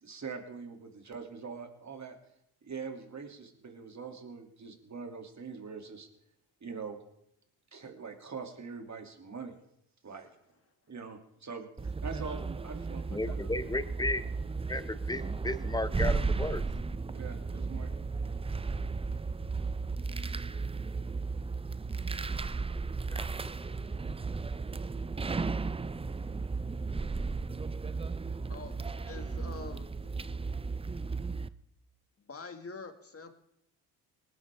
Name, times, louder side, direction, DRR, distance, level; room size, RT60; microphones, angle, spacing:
voice 1, 0.0-2.2 2.6-6.1 6.6-7.0 7.7-9.6 10.0-10.3 10.9-13.5 17.1-18.0 18.3-18.4, right 5 dB, 35° right, 4 dB, 2.7 m, -43 dB
sound 1, 11.8-31.5, right 4 dB, 15° right, 0.5 m, -35 dB
voice 2, 13.1-14.2 14.7-16.6 23.1-23.5, left 2 dB, 10° left, 13 dB, 1.0 m, -34 dB
voice 3, 28.5-30.2 32.3-33.3, left 4 dB, 30° left, 6 dB, 2.0 m, -46 dB
19.5 x 11.0 x 3.6 m, 0.78 s
supercardioid pair, 60°, 46 cm